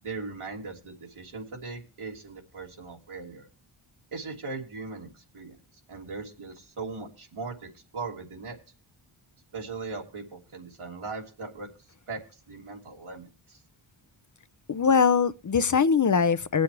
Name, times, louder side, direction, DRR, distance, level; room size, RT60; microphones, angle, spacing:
voice 1, 0.0-3.5 4.1-5.6 5.9-8.6 9.5-11.7 12.1-13.6, right 4 dB, 85° right, 3.1 m, -39 dB
voice 2, 14.7-16.6, left 6 dB, 40° left, 0.5 m, -22 dB
22.0 x 7.8 x 3.3 m
wide cardioid pair, 85°, 49 cm